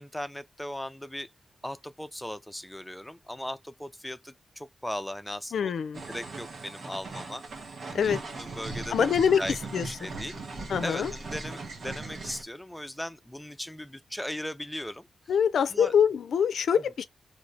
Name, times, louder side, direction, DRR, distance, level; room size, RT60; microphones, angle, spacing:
voice 1, 0.0-1.3 1.6-5.7 6.1-7.4 7.9-9.1 9.4-9.6 9.8-10.4 10.8-15.1 15.7-15.9, left 1 dB, 5° left, 0.5 m, -38 dB
voice 2, 5.5-6.0 7.9-8.2 8.9-9.4 9.7-9.9 10.7-11.1 15.3-17.0, left 7 dB, 80° left, 0.4 m, -24 dB
sound 1, 5.9-12.4, right 3 dB, 65° right, 1.2 m, -39 dB
3.1 x 2.6 x 3.2 m
cardioid pair, 55°, 0 cm